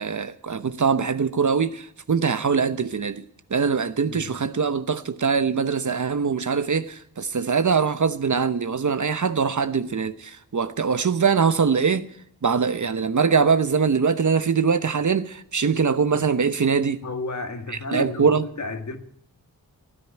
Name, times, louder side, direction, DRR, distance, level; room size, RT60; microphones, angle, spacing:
voice 1, 0.0-3.2 3.5-12.1 12.4-17.0 17.9-18.4, right 5 dB, 50° right, 0.9 m, -22 dB
voice 2, 17.0-19.0, left 3 dB, 45° left, 1.9 m, -32 dB
15.5 x 9.5 x 9.1 m
cardioid pair, 45°, 39 cm